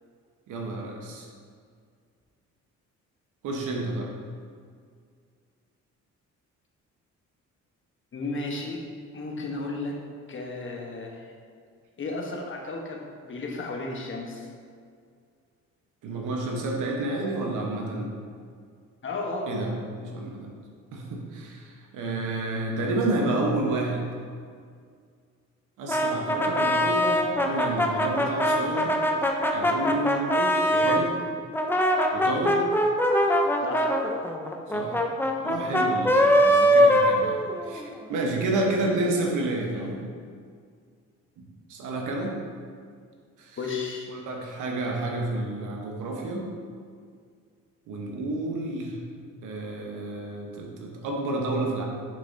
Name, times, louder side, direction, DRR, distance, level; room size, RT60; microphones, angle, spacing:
voice 1, 0.5-1.3 3.4-4.1 16.0-18.1 19.5-20.5 20.9-24.0 25.8-28.9 29.5-30.3 30.8-31.1 32.1-32.6 34.7-35.0 35.4-37.4 37.6-40.0 41.4-41.5 41.7-42.4 43.4-43.6 44.1-46.5 47.9-49.0 49.4-51.8, right 2 dB, 85° right, 0 dB, 1.1 m, -30 dB
voice 2, 8.1-8.8 9.1-10.0 10.3-11.2 12.0-14.5 19.0-19.6 30.3-31.0 33.6-34.0 43.6-44.1, left 3 dB, 40° left, 0 dB, 1.1 m, -33 dB
Brass instrument, 25.9-31.1 31.5-37.8, equal, 5° left, 0.5 m, -22 dB
6.8 x 5.7 x 2.7 m, 2.1 s
cardioid pair, 90°, 30 cm